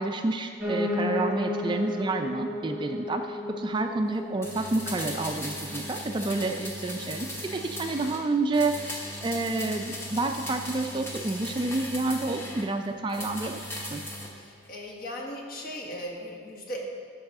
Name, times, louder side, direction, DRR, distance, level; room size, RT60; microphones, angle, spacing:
voice 1, 0.0-13.6 13.9-14.0, right 2 dB, 25° right, 5 dB, 0.3 m, -29 dB
Piano, 0.6-9.7 10.1-11.3 11.5-11.6 11.9-12.0 12.2-12.3 12.9-13.0, left 1 dB, 5° right, 1.4 m, -35 dB
sound 1, 4.4-8.2 8.5-12.7 13.1-14.3 14.6-14.7, left 1 dB, 15° left, 1.0 m, -38 dB
voice 2, 14.4-16.8, equal, 50° left, -1 dB, 1.3 m, -38 dB
13.5 x 5.5 x 3.6 m, 2.2 s
head